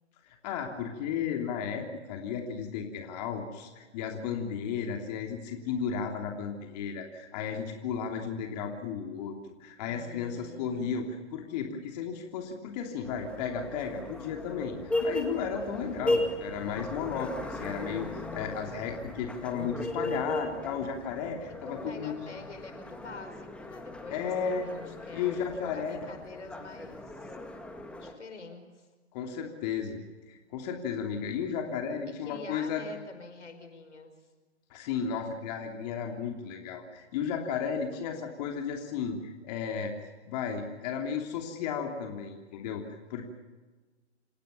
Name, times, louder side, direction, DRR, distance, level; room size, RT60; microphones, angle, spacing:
voice 1, 0.3-9.3 9.6-14.7 15.0-22.1 24.1-24.7 25.1-26.0 29.1-30.0 30.3-32.8 34.7-39.9 40.2-43.2, left 7 dB, 35° left, 3 dB, 3.2 m, -34 dB
voice 2, 9.9-11.1 21.6-27.4 28.0-28.9 32.3-34.1, left 3 dB, 85° left, 8 dB, 5.1 m, -46 dB
sound 1, 13.0-28.1, left 1 dB, 5° left, 1.9 m, -37 dB
28.5 x 16.5 x 7.0 m, 1.3 s
hypercardioid pair, 135°, 34 cm